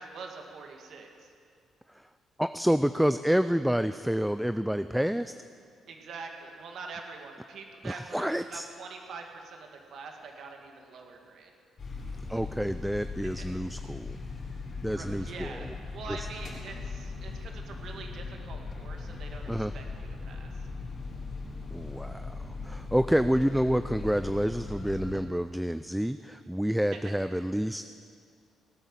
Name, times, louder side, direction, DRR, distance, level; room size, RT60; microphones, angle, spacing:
voice 1, 0.0-1.3 5.9-11.5 13.4-13.5 14.8-20.7 26.9-27.0, right 4 dB, 65° right, 3 dB, 2.0 m, -44 dB
voice 2, 2.4-5.3 7.8-8.7 12.3-14.2 14.8-15.7 16.1-16.2 19.5-19.7 21.7-22.4 22.6-27.8, equal, 5° right, 11 dB, 0.3 m, -28 dB
sound 1, 11.8-25.2, left 3 dB, 45° left, 4.2 m, -39 dB
17.0 x 9.2 x 7.3 m, 2.3 s
cardioid pair, 90°, 0 cm